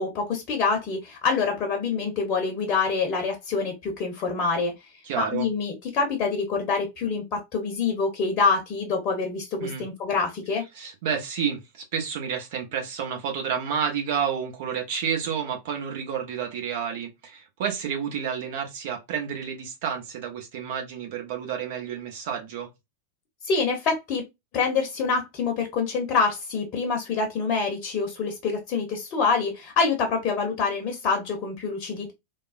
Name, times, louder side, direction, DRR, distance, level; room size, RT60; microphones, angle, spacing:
voice 1, 0.0-4.7 5.1-10.6 23.4-24.2 24.5-32.1, left 4 dB, 35° left, 0.8 m, -26 dB
voice 2, 5.0-5.5 9.6-9.8 10.7-22.7, right 7 dB, 50° right, 0.8 m, -30 dB
3.4 x 2.2 x 2.4 m
figure-of-eight pair, 90°, 0 cm